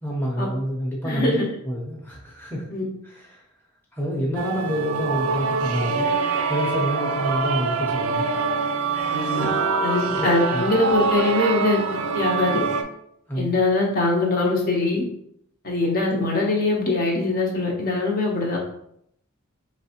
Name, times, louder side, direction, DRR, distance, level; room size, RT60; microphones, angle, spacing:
voice 1, 0.0-1.4 1.6-2.7 3.0-3.4 3.9-6.1 6.5-8.3 10.0-10.3 10.5-10.7 13.3-13.6, equal, 10° left, -4 dB, 0.8 m, -28 dB
voice 2, 1.0-1.5 2.7-2.8 9.1-9.5 9.8-12.6 13.3-15.0 15.6-18.6, left 2 dB, 45° left, -2 dB, 0.9 m, -22 dB
sound 1, 4.3-12.8, right 4 dB, 75° right, 0.5 m, -24 dB
4.5 x 3.1 x 2.9 m, 0.73 s
head